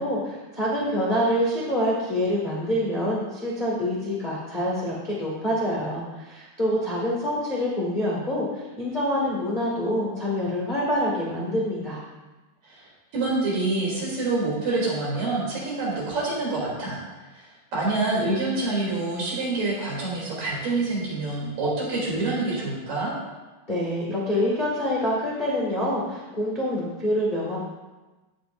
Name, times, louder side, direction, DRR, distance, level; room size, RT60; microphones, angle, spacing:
voice 1, 0.0-12.0 23.7-27.6, equal, 50° left, -6 dB, 0.5 m, -26 dB
voice 2, 12.6-17.0 17.3-23.1, right 2 dB, 55° right, -6 dB, 4.6 m, -27 dB
16.0 x 6.8 x 2.6 m, 1.2 s
omnidirectional pair, 4.8 m